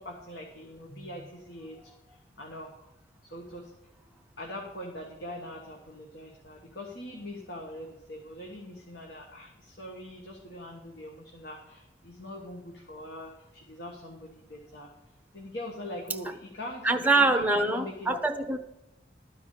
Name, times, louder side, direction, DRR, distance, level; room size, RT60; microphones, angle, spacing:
voice 1, 0.0-2.7 3.2-3.7 4.4-14.9 15.3-18.2, left 1 dB, 65° left, 0 dB, 1.5 m, -42 dB
voice 2, 16.8-18.6, right 3 dB, 10° right, 6 dB, 0.7 m, -24 dB
12.5 x 4.8 x 8.3 m, 0.91 s
head